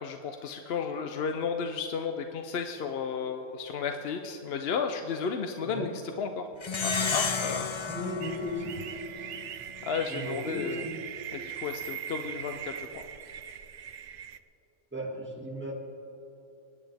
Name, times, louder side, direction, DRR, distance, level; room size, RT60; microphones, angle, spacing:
voice 1, 0.0-5.9 6.2-6.5 6.8-7.7 9.8-10.8 11.3-13.0, left 6 dB, 60° left, 5 dB, 0.8 m, -33 dB
Plucked string instrument, 6.6-9.4, left 5 dB, 45° left, 0.4 m, -32 dB
voice 2, 7.9-8.7 10.1-10.9 14.9-15.7, equal, 10° right, -2 dB, 2.1 m, -35 dB
sound 1, 8.2-14.4, right 9 dB, 60° right, 0.6 m, -41 dB
25.5 x 9.6 x 3.4 m, 3.0 s
omnidirectional pair, 1.3 m